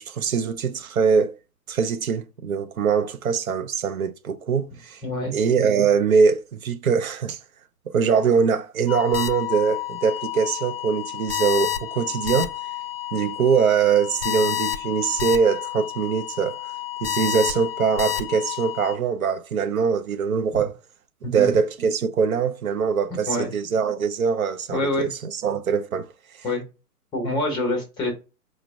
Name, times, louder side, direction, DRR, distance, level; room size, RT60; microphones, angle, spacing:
voice 1, 0.0-1.4 1.7-5.0 5.3-7.4 7.9-12.5 13.1-16.6 17.0-20.7 21.3-25.1 25.4-26.1, right 6 dB, 65° right, 0.5 m, -22 dB
voice 2, 5.0-5.3 21.2-21.6 23.3-23.5 24.7-25.1 26.4-26.6 27.1-28.1, left 1 dB, 10° left, 0.7 m, -25 dB
sound 1, 8.9-19.0, left 12 dB, 40° left, 0.4 m, -29 dB
4.6 x 2.1 x 3.4 m
figure-of-eight pair, 120°, 46 cm